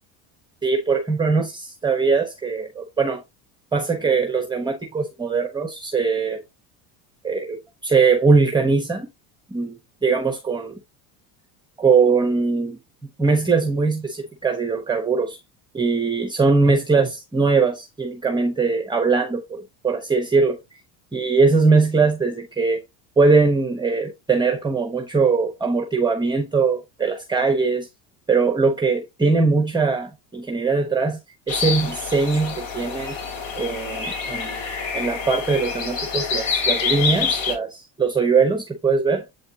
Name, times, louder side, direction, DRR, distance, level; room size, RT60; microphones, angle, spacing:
voice 1, 0.6-3.2 3.7-6.4 7.2-9.1 9.5-10.8 11.8-12.8 13.2-15.4 15.7-20.6 21.1-22.8 23.2-27.9 28.3-31.2 31.5-33.2 33.6-34.6 34.9-39.2, right 4 dB, 10° right, 1.0 m, -21 dB
sound 1, 31.5-37.5, left 5 dB, 55° left, 3.4 m, -26 dB
8.4 x 4.2 x 2.8 m
supercardioid pair, 125°, 41 cm